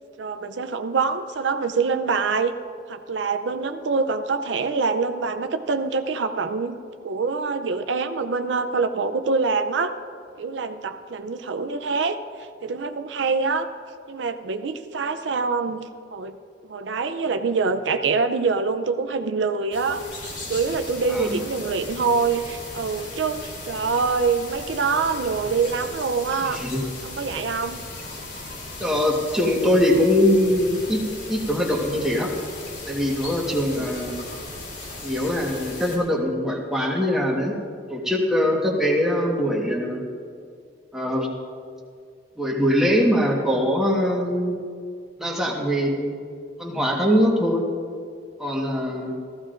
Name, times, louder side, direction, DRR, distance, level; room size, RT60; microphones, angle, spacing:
voice 1, 0.2-2.5 2.9-6.8 7.0-9.9 10.4-12.2 12.6-13.7 14.1-16.4 16.7-26.6 27.0-27.8 33.6-33.9, right 4 dB, 85° right, 8 dB, 0.5 m, -25 dB
sound 1, 19.7-36.0, left 2 dB, 65° left, 3.2 m, -37 dB
voice 2, 21.1-21.4 26.4-26.8 28.8-32.3 32.9-34.2 35.0-37.5 37.9-40.0 40.9-41.3 42.4-44.6 45.2-46.1 46.6-47.6 48.4-49.2, equal, 5° right, -2 dB, 1.4 m, -22 dB
15.5 x 14.5 x 2.5 m, 2.2 s
head